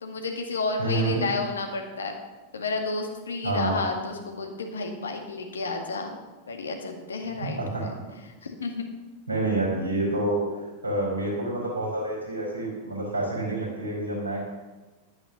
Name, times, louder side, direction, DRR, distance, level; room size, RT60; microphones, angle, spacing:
voice 1, 0.0-2.1 2.5-6.2 6.5-7.9 8.4-8.8, left 3 dB, 70° left, 4 dB, 1.9 m, -31 dB
voice 2, 0.8-1.2 3.4-3.8 7.6-7.8 9.3-10.4 10.8-14.4, right 2 dB, 85° right, -3 dB, 5.2 m, -28 dB
11.5 x 9.4 x 6.6 m, 1.2 s
figure-of-eight pair, 90°, 0 cm